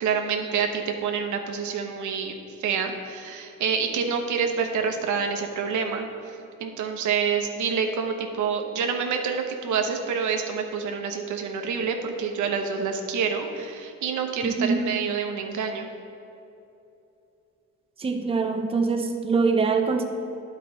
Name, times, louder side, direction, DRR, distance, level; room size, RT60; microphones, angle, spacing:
voice 1, 0.0-2.3 2.6-6.1 6.6-15.9, right 6 dB, 75° right, 4 dB, 0.8 m, -27 dB
voice 2, 14.4-14.8 18.0-20.0, right 4 dB, 20° right, 4 dB, 0.6 m, -24 dB
10.0 x 4.6 x 4.0 m, 2.8 s
cardioid pair, 90°, 30 cm